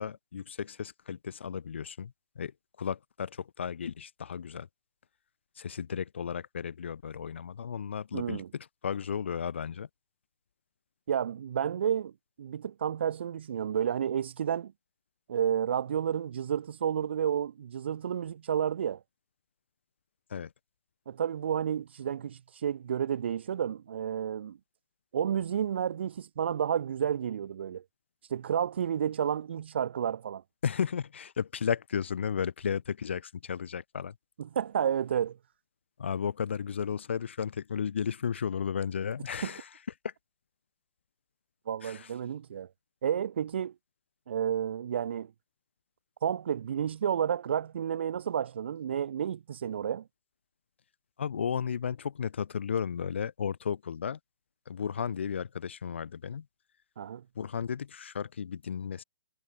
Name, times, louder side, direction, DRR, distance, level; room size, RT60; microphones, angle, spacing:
voice 1, 0.0-2.5 2.8-4.7 5.6-9.9 20.3-20.5 30.6-34.1 36.0-39.7 41.8-42.1 51.2-54.2 54.7-56.5 57.4-59.0, left 7 dB, 70° left, 1.9 m, -34 dB
voice 2, 8.1-8.5 11.1-12.1 12.4-14.7 15.3-19.0 21.1-24.6 25.1-27.8 28.3-30.4 34.4-35.4 39.4-39.5 41.7-42.7 43.0-43.7 44.3-45.3 46.2-50.0 57.0-57.2, right 8 dB, 65° right, 0.4 m, -31 dB
hypercardioid pair, 155°, 6 cm